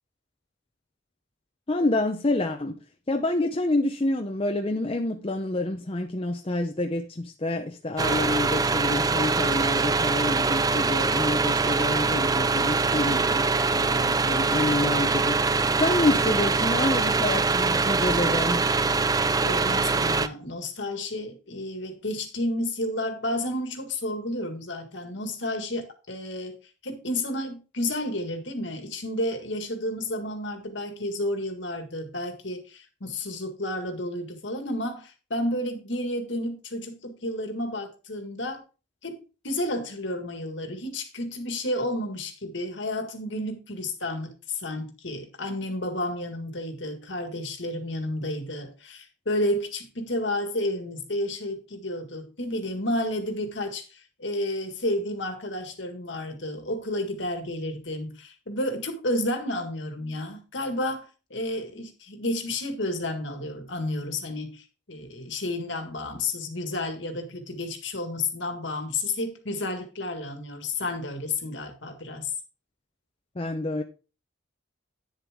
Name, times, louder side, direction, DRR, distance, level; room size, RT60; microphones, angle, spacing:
voice 1, 1.7-2.8 3.1-15.4 15.8-18.6 73.4-73.8, left 2 dB, 30° left, 0.7 m, -28 dB
sound 1, 8.0-20.3, right 4 dB, 20° right, 0.4 m, -23 dB
voice 2, 19.4-26.6 26.8-38.6 39.0-39.2 39.4-72.3, left 1 dB, 65° left, 1.8 m, -31 dB
9.6 x 7.0 x 3.6 m
head